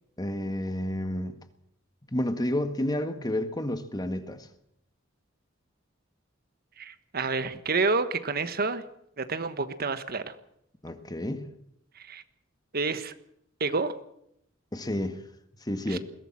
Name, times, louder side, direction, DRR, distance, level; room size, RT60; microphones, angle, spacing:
voice 1, 0.2-1.3 2.1-4.5 10.8-11.5 14.7-15.2 15.6-16.0, left 1 dB, 20° left, 9 dB, 1.7 m, -30 dB
voice 2, 6.8-8.8 9.2-10.3 12.0-12.2 12.7-13.1 13.6-13.9 15.9-16.0, right 4 dB, 50° right, 11 dB, 1.4 m, -29 dB
21.5 x 17.0 x 7.4 m, 0.75 s
head